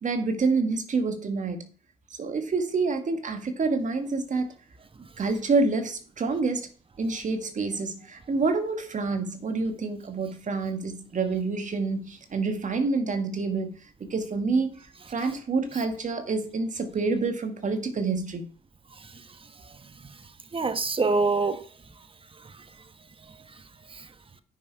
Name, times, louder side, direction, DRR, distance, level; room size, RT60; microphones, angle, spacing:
voice 1, 0.0-1.7 2.2-4.5 5.2-6.7 7.0-13.7 14.0-14.8 15.1-18.5, right 4 dB, 50° right, 1.9 m, -27 dB
voice 2, 19.7-20.1 20.5-21.7 22.4-22.6 23.9-24.1, right 3 dB, 30° right, 1.3 m, -27 dB
9.2 x 6.2 x 4.8 m
supercardioid pair, 55°, 17 cm